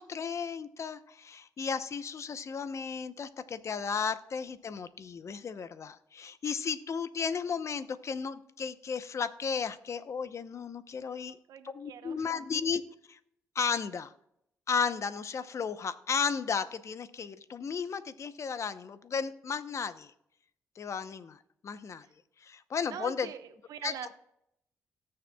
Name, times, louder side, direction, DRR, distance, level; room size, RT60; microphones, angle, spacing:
voice 1, 0.0-11.4 11.7-12.8 13.1-13.2 13.5-14.1 14.7-20.1 20.8-22.1 22.4-23.3 23.8-23.9, left 6 dB, 55° left, 12 dB, 0.8 m, -34 dB
voice 2, 11.3-12.3 22.0-22.1 22.9-24.1, right 8 dB, 80° right, 8 dB, 1.1 m, -43 dB
18.5 x 6.7 x 2.3 m, 0.76 s
cardioid pair, 70°, 6 cm